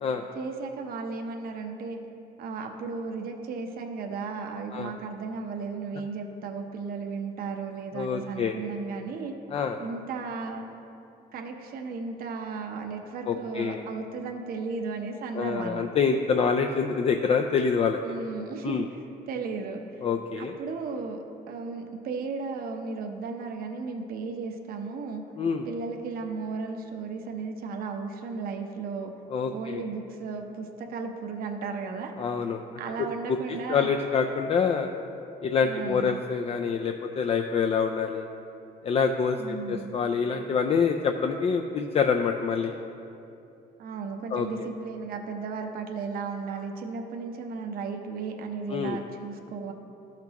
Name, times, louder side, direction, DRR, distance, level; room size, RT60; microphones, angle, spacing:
voice 1, 0.3-2.0 2.4-9.3 9.8-10.6 11.3-15.9 18.1-18.8 19.3-20.0 20.4-25.2 25.6-29.1 29.5-32.1 32.8-33.9 35.6-36.2 39.4-39.9 43.8-49.7, right 4 dB, 60° right, 3 dB, 0.8 m, -35 dB
voice 2, 7.9-8.5 9.5-9.8 13.3-13.8 15.3-18.0 18.6-18.9 20.0-20.5 25.4-25.7 29.3-29.8 32.2-32.6 33.3-33.4 33.7-34.9 35.4-38.3 38.8-42.7 44.3-44.5 48.7-49.0, left 6 dB, 35° left, 4 dB, 0.4 m, -26 dB
13.0 x 5.9 x 2.9 m, 2.7 s
cardioid pair, 110°, 17 cm